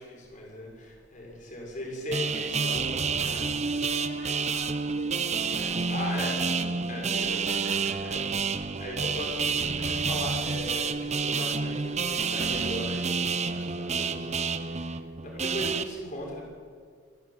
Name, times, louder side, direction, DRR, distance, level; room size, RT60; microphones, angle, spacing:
voice 1, 0.0-3.4 5.9-6.3 6.9-7.0 8.1-8.2 8.6-16.5, left 1 dB, 40° left, -1 dB, 6.3 m, -38 dB
sound 1, 2.1-15.8, right 5 dB, 35° right, 0.9 m, -29 dB
voice 2, 2.2-8.2, left 1 dB, 65° left, -6 dB, 6.5 m, -44 dB
27.5 x 11.5 x 9.5 m, 2.1 s
head